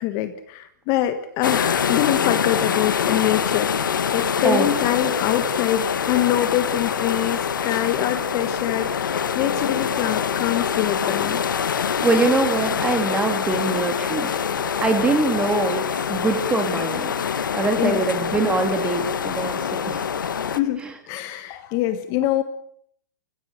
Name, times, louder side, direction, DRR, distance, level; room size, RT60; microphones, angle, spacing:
voice 1, 0.0-11.4 17.8-18.0 20.5-22.4, left 12 dB, 35° left, 10 dB, 1.3 m, -24 dB
sound 1, 1.4-20.6, left 7 dB, 85° left, 1.4 m, -25 dB
voice 2, 12.0-14.3 14.8-17.1 17.5-20.0 20.8-20.9, right 3 dB, 10° right, 6 dB, 2.8 m, -23 dB
28.5 x 15.5 x 6.7 m, 0.66 s
hypercardioid pair, 145°, 10 cm